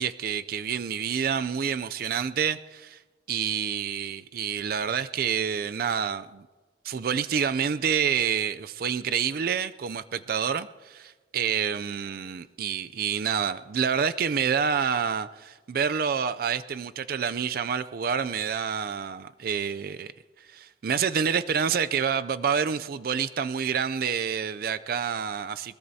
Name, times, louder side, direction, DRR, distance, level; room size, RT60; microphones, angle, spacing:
voice 1, 0.0-3.0 3.3-6.5 6.8-20.1 20.5-25.8, right 7 dB, 55° right, 0.4 m, -28 dB
21.5 x 20.5 x 2.8 m
head